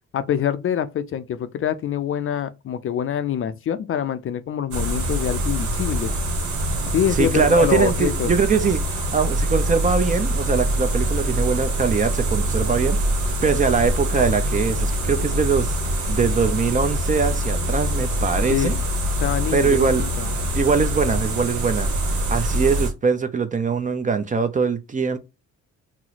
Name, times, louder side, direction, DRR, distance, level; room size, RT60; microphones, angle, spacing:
voice 1, 0.1-6.1 6.9-8.3 18.5-18.8 19.2-20.3, left 9 dB, 45° left, 0.4 m, -25 dB
sound 1, 4.7-22.9, equal, 75° right, 1.0 m, -24 dB
voice 2, 7.2-8.8 9.1-18.8 19.5-20.0 20.5-25.2, right 5 dB, 25° right, 0.4 m, -22 dB
2.9 x 2.0 x 3.9 m
cardioid pair, 90°, 30 cm